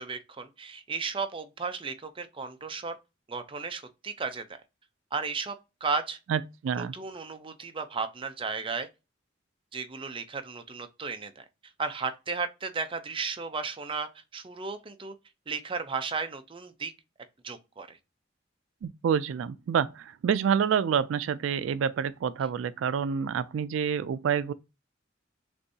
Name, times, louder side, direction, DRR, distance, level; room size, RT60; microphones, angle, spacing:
voice 1, 0.0-3.0 3.3-4.6 5.1-5.6 5.8-6.2 6.8-8.9 9.7-11.4 11.8-15.2 15.5-16.9 17.4-18.0, right 4 dB, 30° right, 0.6 m, -34 dB
voice 2, 6.3-6.9 18.8-24.5, right 7 dB, 85° right, 0.3 m, -28 dB
6.5 x 2.6 x 2.7 m
head